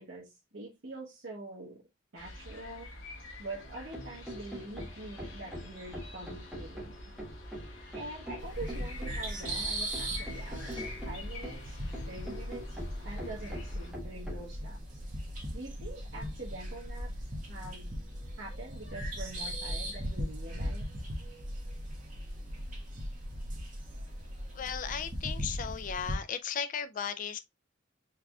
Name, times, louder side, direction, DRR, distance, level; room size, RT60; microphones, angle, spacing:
voice 1, 0.0-1.8 2.1-2.9 3.4-7.0 7.9-15.0 15.5-17.9 18.4-20.8, right 2 dB, 70° right, 1.2 m, -45 dB
sound 1, 2.2-13.9, left 2 dB, 90° left, 1.6 m, -48 dB
sound 2, 3.6-14.5, equal, 5° right, 1.5 m, -44 dB
sound 3, 8.4-26.2, equal, 45° right, 1.5 m, -38 dB
voice 2, 24.5-27.4, left 7 dB, 40° left, 0.3 m, -36 dB
4.7 x 3.5 x 2.3 m
head